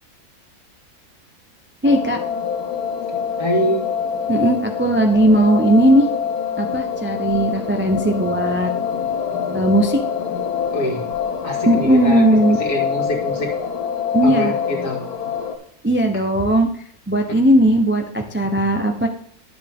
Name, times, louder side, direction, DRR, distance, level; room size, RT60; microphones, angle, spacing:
sound 1, 1.8-15.6, left 7 dB, 75° left, 1.4 m, -25 dB
voice 1, 1.8-2.2 4.3-6.1 6.6-8.7 9.5-10.0 11.7-12.6 14.1-14.5 15.8-16.7 17.1-19.1, right 1 dB, 15° right, 4 dB, 0.4 m, -17 dB
voice 2, 3.4-3.8 10.7-11.0 11.4-12.2 12.6-13.5 14.2-15.0 17.3-17.4, equal, 55° left, -1 dB, 2.6 m, -24 dB
10.5 x 8.1 x 3.6 m, 0.63 s
omnidirectional pair, 1.6 m